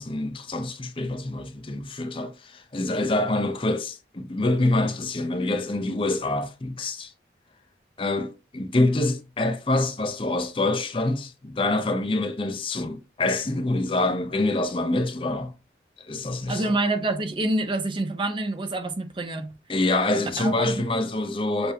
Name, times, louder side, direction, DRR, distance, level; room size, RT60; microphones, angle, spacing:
voice 1, 0.0-7.1 8.0-15.5 16.0-16.7 19.7-21.7, left 2 dB, 30° left, 0.6 m, -26 dB
voice 2, 16.5-19.5 20.4-20.8, right 2 dB, 25° right, 0.5 m, -27 dB
6.7 x 2.6 x 2.8 m
head